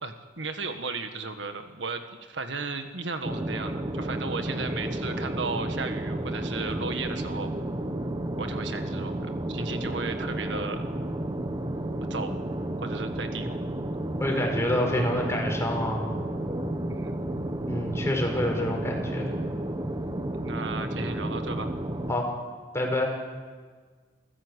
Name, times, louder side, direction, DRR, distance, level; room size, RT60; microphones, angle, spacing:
voice 1, 0.0-7.5 8.4-10.9 12.1-12.4 12.8-13.5 16.9-17.2 20.4-21.8, right 4 dB, 80° right, 7 dB, 1.6 m, -35 dB
sound 1, 3.2-22.1, right 1 dB, 25° right, 1.3 m, -32 dB
voice 2, 14.2-16.0 17.7-19.3 22.1-22.3 22.7-23.1, left 1 dB, 15° left, 1 dB, 5.0 m, -27 dB
28.5 x 14.5 x 8.2 m, 1.5 s
head